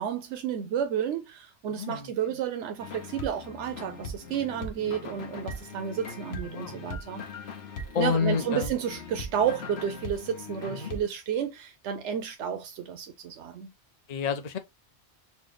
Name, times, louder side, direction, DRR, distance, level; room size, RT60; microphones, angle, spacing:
voice 1, 0.0-7.2 8.0-13.7, right 8 dB, 85° right, 0.9 m, -31 dB
voice 2, 1.7-2.1 6.3-6.9 7.9-8.8 10.7-10.9 14.1-14.6, left 6 dB, 45° left, 0.6 m, -29 dB
sound 1, 2.8-11.0, left 2 dB, 65° left, 1.1 m, -40 dB
4.3 x 2.3 x 3.1 m
omnidirectional pair, 1.2 m